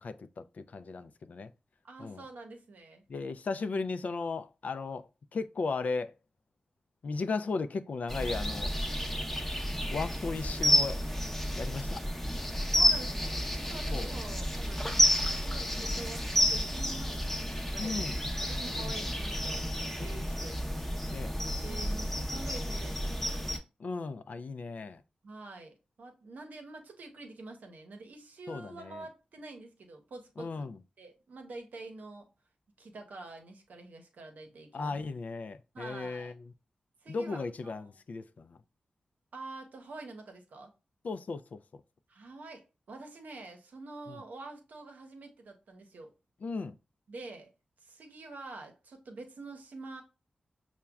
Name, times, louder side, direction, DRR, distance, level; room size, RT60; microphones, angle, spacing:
voice 1, 0.0-1.5 2.0-2.2 3.1-6.1 7.0-8.7 9.9-11.0 11.5-12.0 13.9-14.1 14.8-15.0 17.8-18.2 18.7-19.0 20.0-20.2 21.1-21.3 23.8-25.0 28.5-29.1 30.4-30.8 34.7-36.3 37.1-38.6 41.0-41.6 44.1-44.2 46.4-46.8, left 4 dB, 65° left, 0.3 m, -36 dB
voice 2, 1.8-3.0 12.6-15.0 15.4-18.0 18.4-20.6 21.6-23.6 25.2-30.6 31.0-32.3 32.8-34.9 35.7-36.3 37.0-37.9 39.3-40.7 42.1-46.1 47.1-47.5 47.8-50.0, right 3 dB, 80° right, 0.7 m, -47 dB
sound 1, 8.1-23.6, equal, 10° left, 0.6 m, -31 dB
5.7 x 2.1 x 2.2 m
cardioid pair, 50°, 3 cm